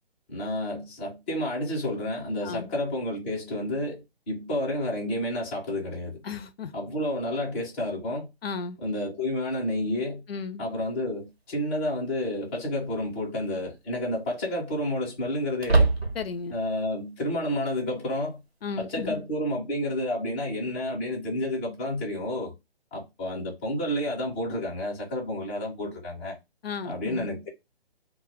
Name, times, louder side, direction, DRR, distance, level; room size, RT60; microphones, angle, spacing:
voice 1, 0.3-6.2 6.7-8.3 8.8-10.2 10.6-15.9 16.5-18.4 18.8-22.5 22.9-26.4 26.8-27.5, left 1 dB, 10° left, 0.5 m, -30 dB
voice 2, 6.2-6.7 8.4-8.8 10.3-10.6 16.2-16.5 18.6-19.2 26.6-27.3, left 5 dB, 70° left, 0.5 m, -34 dB
sound 1, 11.0-11.1 12.9-13.3 13.7-13.8 15.6-16.5, right 3 dB, 80° right, 1.0 m, -24 dB
2.1 x 2.0 x 3.2 m
figure-of-eight pair, 140°, 31 cm